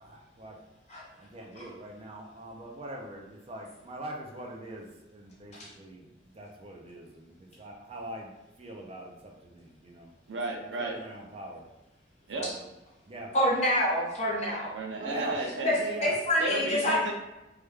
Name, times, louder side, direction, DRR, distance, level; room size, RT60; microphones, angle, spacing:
voice 1, 0.0-0.6 1.2-8.3 8.6-10.1 10.6-11.6 12.3-12.7 13.1-13.3 15.0-15.4 15.7-16.1, right 1 dB, 35° right, 0 dB, 0.4 m, -43 dB
voice 2, 10.3-11.0 12.3-12.5 14.7-15.7 16.4-17.1, right 3 dB, 85° right, 1 dB, 0.5 m, -33 dB
voice 3, 13.3-14.7 15.6-17.0, equal, 40° left, -5 dB, 1.0 m, -26 dB
3.2 x 2.2 x 3.3 m, 0.97 s
head